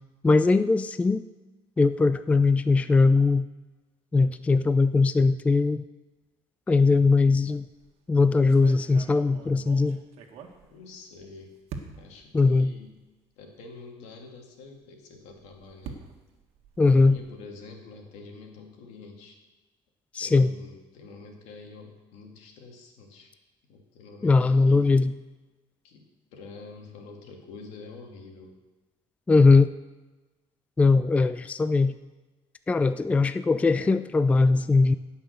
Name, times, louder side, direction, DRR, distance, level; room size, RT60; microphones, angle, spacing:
voice 1, 0.2-1.2 1.8-3.5 4.1-5.8 6.7-7.7 8.1-10.0 12.3-12.7 16.8-17.2 20.1-20.5 24.2-25.1 29.3-29.7 30.8-31.9 32.7-34.9, left 3 dB, 10° left, 13 dB, 0.3 m, -20 dB
sound 1, 7.6-7.9 8.5-11.2 11.7-12.2 13.0-13.1 13.4-13.5 15.1-17.5, right 6 dB, 65° right, 1.6 m, -44 dB
voice 2, 10.7-11.5 11.9-13.0 13.4-16.0 16.9-19.4 20.2-23.3 23.7-24.9 25.8-26.0 26.3-28.6, left 3 dB, 85° left, 2 dB, 2.4 m, -46 dB
17.0 x 5.7 x 6.6 m, 1.2 s
cardioid pair, 130°, 11 cm